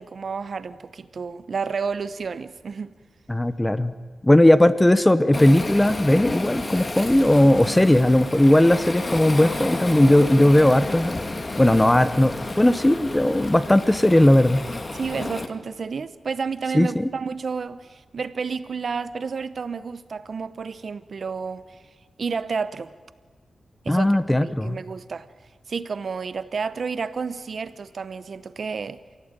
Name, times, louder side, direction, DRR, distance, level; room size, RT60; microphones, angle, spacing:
voice 1, 0.0-2.9 14.9-21.8 22.2-22.9 23.8-24.1 24.4-25.3 25.7-29.0, right 5 dB, 60° right, 0.9 m, -30 dB
voice 2, 3.3-3.9 4.2-11.2 11.6-14.6 16.7-17.1 23.9-24.8, left 1 dB, 15° left, 1.0 m, -17 dB
Waves surf, 5.3-15.5, left 2 dB, 30° left, 1.9 m, -31 dB
28.0 x 16.5 x 9.0 m
wide cardioid pair, 90°, 0 cm